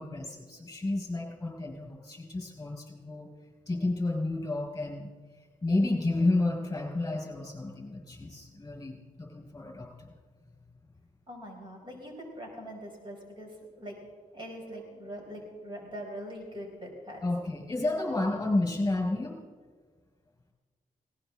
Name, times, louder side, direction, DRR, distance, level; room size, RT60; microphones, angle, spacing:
voice 1, 0.0-3.3 3.7-5.1 5.6-10.1 17.2-19.4, left 2 dB, 20° left, 0 dB, 5.2 m, -31 dB
voice 2, 11.3-14.0 14.3-17.2, equal, 35° right, 0 dB, 4.8 m, -42 dB
19.5 x 18.0 x 3.8 m, 1.5 s
cardioid pair, 85°, 15 cm